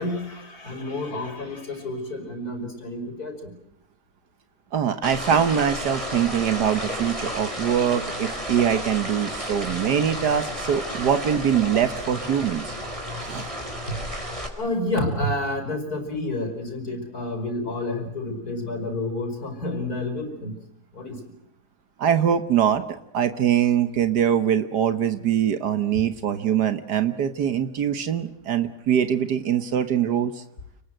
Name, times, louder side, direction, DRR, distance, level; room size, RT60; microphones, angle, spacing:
voice 1, 0.0-3.5 13.9-14.0 14.5-20.6 20.9-21.2, left 1 dB, 60° left, 6 dB, 6.0 m, -29 dB
voice 2, 4.7-12.7 13.2-13.5 22.0-22.8 23.1-30.4, right 9 dB, 75° right, 10 dB, 1.7 m, -23 dB
sound 1, 5.0-14.5, equal, 20° right, 4.6 m, -32 dB
29.0 x 20.5 x 7.9 m, 0.82 s
omnidirectional pair, 1.8 m